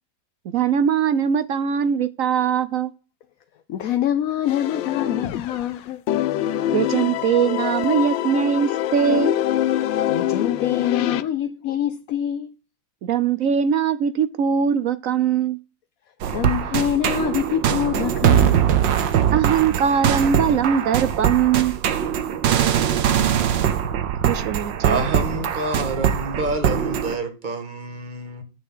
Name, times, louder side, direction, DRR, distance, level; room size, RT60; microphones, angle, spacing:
voice 1, 0.5-2.9 6.7-9.3 13.0-15.6 19.3-21.8 24.2-25.0, right 7 dB, 65° right, 0.8 m, -21 dB
voice 2, 3.7-6.0 10.1-12.5 16.3-18.7, left 11 dB, 65° left, 0.9 m, -25 dB
sound 1, 4.5-5.7 6.1-11.2, left 12 dB, 85° left, 1.4 m, -24 dB
sound 2, 16.2-27.2, right 9 dB, 80° right, 1.7 m, -21 dB
voice 3, 24.8-28.4, right 2 dB, 25° right, 1.7 m, -27 dB
8.3 x 6.8 x 5.5 m
omnidirectional pair, 2.0 m